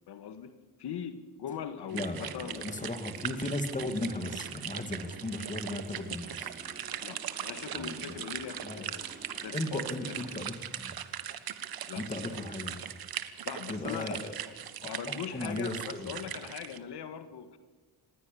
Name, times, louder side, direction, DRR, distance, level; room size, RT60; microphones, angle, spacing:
voice 1, 0.1-2.7 7.0-9.1 9.4-10.4 11.9-12.4 13.5-14.3 14.8-17.6, left 8 dB, 85° left, 10 dB, 1.8 m, -41 dB
sound 1, 1.5-10.3, right 2 dB, 25° right, 3.6 m, -51 dB
voice 2, 1.9-6.6 7.8-8.2 8.6-8.9 9.5-11.0 12.0-12.8 13.7-14.3 14.6-16.1, left 2 dB, 20° left, 7 dB, 2.6 m, -36 dB
sound 2, 1.9-16.8, right 10 dB, 65° right, 1.5 m, -40 dB
26.0 x 20.5 x 7.1 m, 1.3 s
wide cardioid pair, 145°, 39 cm